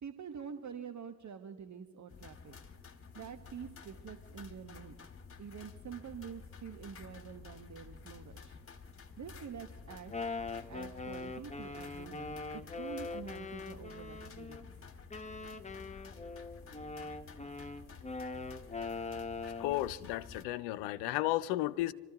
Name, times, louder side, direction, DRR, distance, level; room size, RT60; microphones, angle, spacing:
voice 1, 0.0-2.6 3.1-4.9 5.4-8.6 9.2-10.1 10.7-14.7, right 7 dB, 45° right, 1.3 m, -47 dB
sound 1, 2.1-20.4, left 5 dB, 35° left, 1.9 m, -52 dB
Wind instrument woodwind instrument, 9.9-14.6 15.1-19.8, left 3 dB, 15° left, 1.3 m, -42 dB
voice 2, 19.6-21.9, left 16 dB, 75° left, 0.7 m, -33 dB
27.5 x 14.0 x 3.0 m
hypercardioid pair, 45°, 40 cm